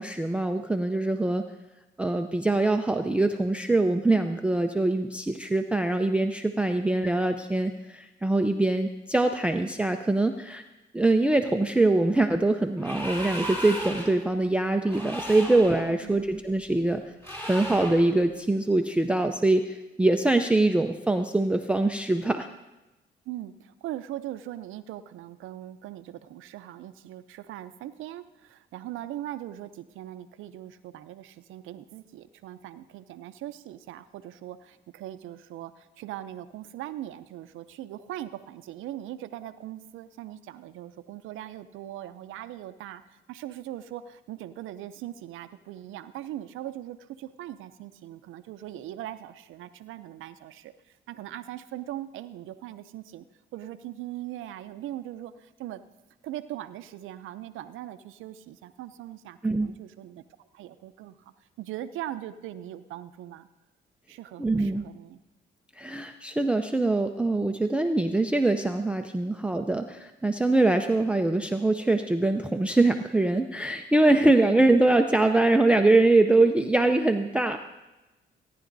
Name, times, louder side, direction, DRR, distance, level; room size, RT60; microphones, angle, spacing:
voice 1, 0.0-1.4 2.0-10.6 10.9-17.0 17.5-22.5 59.4-59.7 64.4-64.8 65.8-77.6, right 2 dB, 5° right, 5 dB, 0.5 m, -23 dB
sound 1, 12.8-14.2 14.8-15.9 17.2-18.1, equal, 10° left, 3.0 m, -35 dB
voice 2, 23.3-53.3 53.5-55.8 56.2-63.5 64.1-65.2, right 13 dB, 85° right, 11 dB, 0.5 m, -40 dB
18.0 x 10.0 x 2.6 m, 1.1 s
cardioid pair, 90°, 20 cm